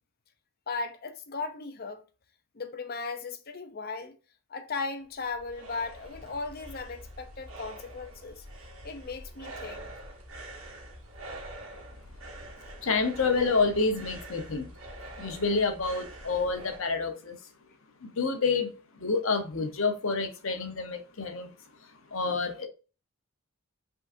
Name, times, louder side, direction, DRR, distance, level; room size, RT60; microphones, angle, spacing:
voice 1, 0.7-2.0 2.6-4.1 4.5-8.4 8.8-9.9, left 4 dB, 45° left, 0.6 m, -37 dB
sound 1, 5.0-16.8, right 1 dB, 70° right, 1.7 m, -45 dB
voice 2, 12.8-14.7 15.2-17.4 18.0-18.7 19.0-21.5 22.1-22.7, left 4 dB, 65° left, 0.9 m, -28 dB
5.3 x 3.7 x 2.6 m
head